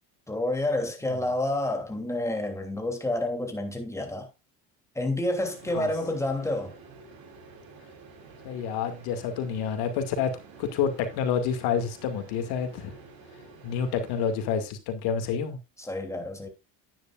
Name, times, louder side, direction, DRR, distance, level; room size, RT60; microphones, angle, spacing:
voice 1, 0.3-4.3 4.9-6.7 15.8-16.5, left 1 dB, 5° left, 3.0 m, -29 dB
sound 1, 5.4-14.3, right 3 dB, 65° right, 4.8 m, -50 dB
voice 2, 8.4-12.9 13.6-15.6, left 7 dB, 80° left, 2.3 m, -28 dB
10.5 x 9.9 x 2.5 m
supercardioid pair, 100°, 39 cm